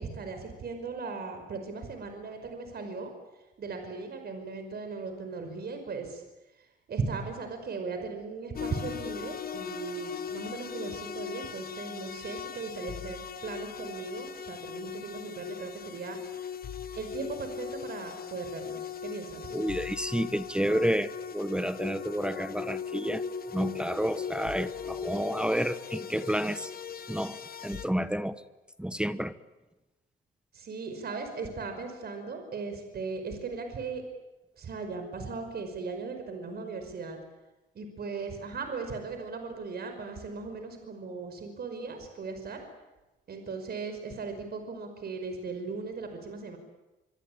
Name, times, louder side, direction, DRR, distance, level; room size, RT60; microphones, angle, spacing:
voice 1, 0.0-3.1 3.6-6.2 6.6-16.5 17.0-19.6 30.5-34.0 34.6-37.2 37.7-42.6 43.3-46.6, right 4 dB, 55° right, 6 dB, 5.5 m, -38 dB
sound 1, 8.5-27.8, left 7 dB, 50° left, 1.4 m, -39 dB
voice 2, 19.5-23.2 23.5-26.7 27.1-27.4 27.6-28.4 28.8-29.3, equal, 5° right, 12 dB, 1.1 m, -30 dB
25.5 x 25.0 x 8.8 m, 1.0 s
cardioid pair, 90°, 20 cm